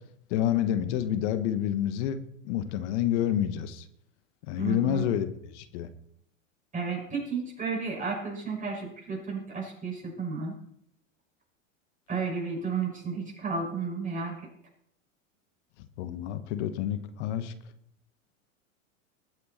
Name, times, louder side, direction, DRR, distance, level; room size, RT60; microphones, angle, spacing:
voice 1, 0.3-3.8 4.4-5.9 16.0-17.5, left 10 dB, 60° left, 11 dB, 1.5 m, -28 dB
voice 2, 4.6-5.0 6.7-10.5 12.1-14.5, right 5 dB, 20° right, 0 dB, 6.3 m, -33 dB
20.5 x 8.4 x 4.3 m, 0.72 s
hypercardioid pair, 105°, 40 cm